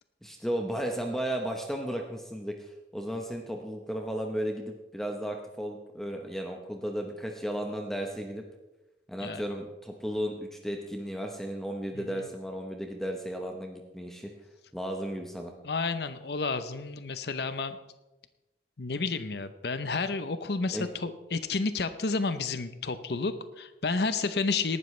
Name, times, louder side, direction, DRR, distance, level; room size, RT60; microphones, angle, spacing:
voice 1, 0.2-8.4 9.1-14.3 14.7-15.5 20.7-20.9, equal, ahead, 2 dB, 1.0 m, -34 dB
voice 2, 15.6-17.8 18.8-24.8, left 4 dB, 70° left, 11 dB, 0.8 m, -31 dB
18.5 x 12.0 x 3.3 m, 1.0 s
head